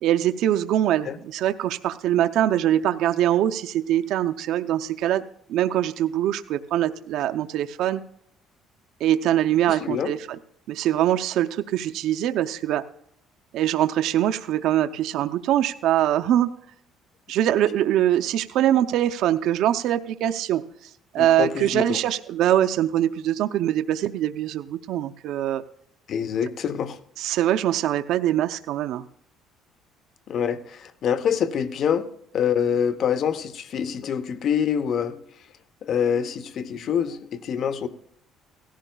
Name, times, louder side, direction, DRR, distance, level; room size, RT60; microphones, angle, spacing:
voice 1, 0.0-5.2 5.5-8.0 9.0-10.2 10.7-12.8 13.5-16.5 17.3-20.6 21.1-25.6 27.2-29.0, right 12 dB, 70° right, 8 dB, 0.5 m, -23 dB
voice 2, 9.7-10.1 21.2-22.0 26.1-27.0 30.3-32.1 32.3-35.2 35.8-37.9, left 8 dB, 50° left, 12 dB, 0.8 m, -25 dB
17.0 x 15.0 x 2.3 m, 0.71 s
cardioid pair, 130°, 0 cm